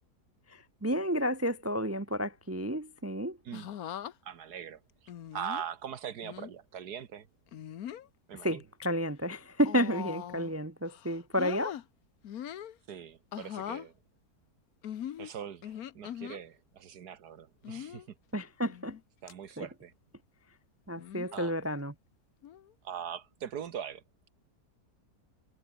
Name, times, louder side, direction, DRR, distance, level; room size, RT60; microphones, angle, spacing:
voice 1, 0.8-3.4 8.4-11.8 18.3-18.9 19.6-19.7 20.9-21.9, equal, 20° right, 0.4 m, -31 dB
sound 1, 3.5-4.1 5.1-5.6 6.2-6.5 7.5-8.1 8.6-8.9 9.6-10.5 10.9-11.8 12.2-12.7 13.3-13.9 14.8-16.4 17.6-18.1 18.7-19.0 19.3-19.4 21.0-21.4 22.4-22.7, left 10 dB, 70° left, 1.4 m, -41 dB
voice 2, 4.2-4.8 5.3-7.3 8.3-8.6 9.9-10.1 12.9-13.9 15.2-18.2 19.2-19.9 21.3-21.6 22.8-24.0, right 8 dB, 80° right, 1.8 m, -41 dB
omnidirectional pair, 1.7 m